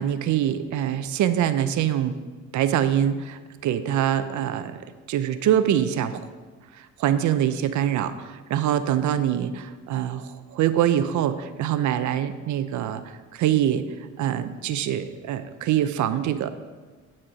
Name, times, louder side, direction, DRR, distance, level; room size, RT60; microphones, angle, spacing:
voice 1, 0.0-2.2 2.5-4.8 5.1-6.2 6.7-13.9 14.2-16.5, right 10 dB, 75° right, 11 dB, 0.6 m, -24 dB
12.0 x 4.4 x 5.0 m, 1.4 s
cardioid pair, 90°, 30 cm